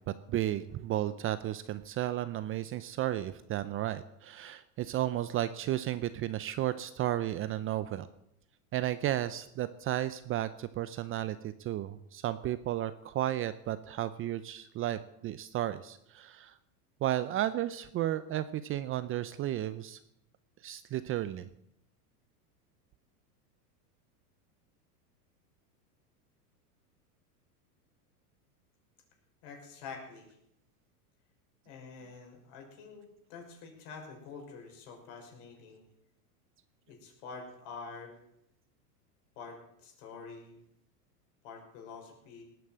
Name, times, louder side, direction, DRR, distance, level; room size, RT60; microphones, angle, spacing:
voice 1, 0.3-8.1 8.7-16.5 17.0-20.0 20.6-21.5, right 13 dB, 25° right, 13 dB, 0.6 m, -33 dB
voice 2, 29.4-30.4 31.7-35.8 36.9-38.1 39.4-40.6 41.4-42.4, left 5 dB, 55° left, 2 dB, 5.9 m, -47 dB
18.5 x 9.3 x 7.5 m, 0.77 s
hypercardioid pair, 120°, 47 cm